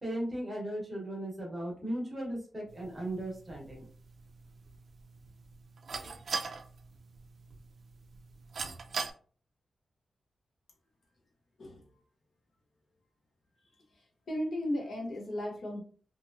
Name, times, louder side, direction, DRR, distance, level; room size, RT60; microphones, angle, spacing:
voice 1, 0.0-3.9, right 1 dB, 15° right, -3 dB, 1.1 m, -37 dB
sound 1, 2.7-9.1, right 4 dB, 55° right, 0.4 m, -42 dB
voice 2, 11.6-12.0 13.6-15.8, left 1 dB, 55° left, 0 dB, 0.8 m, -36 dB
3.0 x 2.5 x 2.5 m, 0.42 s
wide cardioid pair, 160°, 0 cm